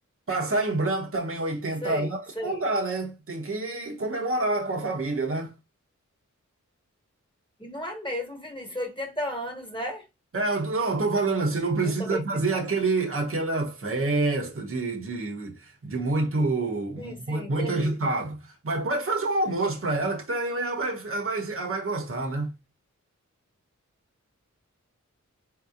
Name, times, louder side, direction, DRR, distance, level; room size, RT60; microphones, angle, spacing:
voice 1, 0.3-5.5 10.3-22.6, right 2 dB, 45° right, 0.9 m, -27 dB
voice 2, 1.8-2.6 7.6-10.0 11.8-12.2 12.5-12.6 17.0-17.9, equal, 15° left, 1.5 m, -34 dB
3.8 x 2.8 x 2.5 m
cardioid pair, 40°, 31 cm